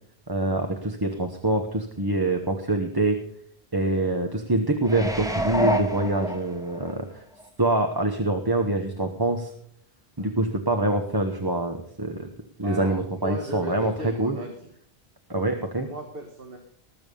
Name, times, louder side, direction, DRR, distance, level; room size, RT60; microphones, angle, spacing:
voice 1, 0.3-3.2 3.7-7.2 7.6-9.5 10.2-12.3 12.6-14.4 15.3-15.9, right 2 dB, 20° right, 5 dB, 1.1 m, -25 dB
sound 1, 4.8-6.9 7.4-7.5, equal, 5° right, 1.4 m, -27 dB
voice 2, 12.6-14.7 15.8-16.6, right 2 dB, 65° right, 3 dB, 1.9 m, -37 dB
19.5 x 7.2 x 5.3 m, 0.67 s
omnidirectional pair, 1.0 m